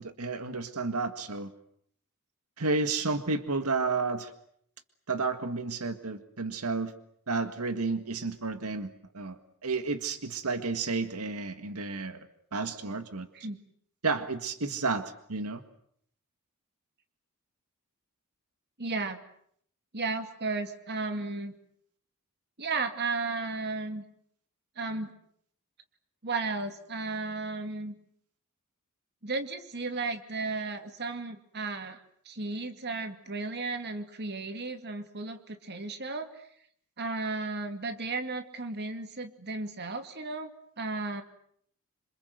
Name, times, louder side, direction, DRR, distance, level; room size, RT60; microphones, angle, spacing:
voice 1, 0.0-1.5 2.6-4.3 5.1-6.9 7.3-13.3 14.0-15.6, right 3 dB, 85° right, 9 dB, 1.8 m, -31 dB
voice 2, 18.8-19.2 19.9-21.5 22.6-24.0 24.8-25.1 26.2-27.9 29.2-32.0 32.3-36.4 37.0-41.2, right 3 dB, 50° right, 8 dB, 2.6 m, -34 dB
27.0 x 27.0 x 7.9 m, 0.67 s
head